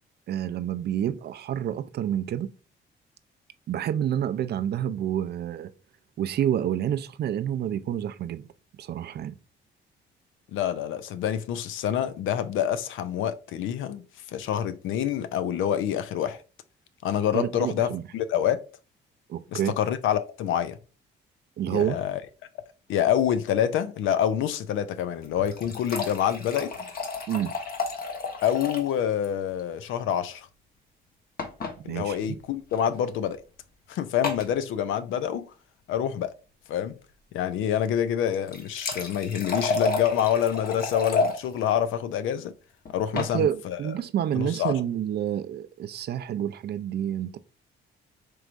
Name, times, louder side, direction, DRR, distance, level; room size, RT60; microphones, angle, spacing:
voice 1, 0.3-2.5 3.7-5.7 6.2-8.5 8.8-9.4 17.3-18.0 19.3-19.7 21.6-22.0 27.3-27.6 31.8-32.4 43.1-47.4, right 10 dB, 55° right, 0.4 m, -28 dB
voice 2, 10.5-14.0 14.3-16.4 17.0-18.6 19.5-20.8 21.7-22.2 22.9-26.7 28.4-30.5 31.8-33.4 33.9-35.5 35.9-36.3 36.7-36.9 37.3-42.5 42.9-43.8 44.3-44.8, left 9 dB, 80° left, 0.5 m, -27 dB
sound 1, 25.2-28.9 29.2-29.3 29.6-29.7 31.4-31.7 32.7-32.9 34.2-34.5 38.3-41.4 42.8-43.3, left 3 dB, 50° left, 1.0 m, -31 dB
4.6 x 3.1 x 2.5 m
cardioid pair, 90°, 20 cm